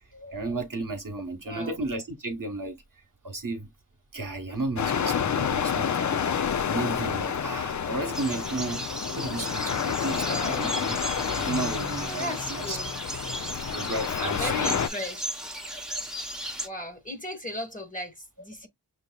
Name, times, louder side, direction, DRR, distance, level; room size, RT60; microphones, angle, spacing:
voice 1, 0.1-2.8 3.2-3.7 4.1-8.8 9.1-11.0 11.4-12.8 13.7-14.8 15.7-16.0, right 2 dB, 50° right, 1.1 m, -34 dB
voice 2, 1.4-1.8 10.2-10.7 12.2-12.9 14.2-15.3 16.6-18.7, equal, 20° left, 1.3 m, -36 dB
sound 1, 4.8-14.9, left 7 dB, 45° left, 0.4 m, -29 dB
Engine, 7.2-13.7, left 3 dB, 70° left, 1.9 m, -44 dB
sound 2, 8.1-16.7, right 1 dB, ahead, 0.9 m, -36 dB
6.4 x 2.8 x 2.2 m
wide cardioid pair, 55°, 42 cm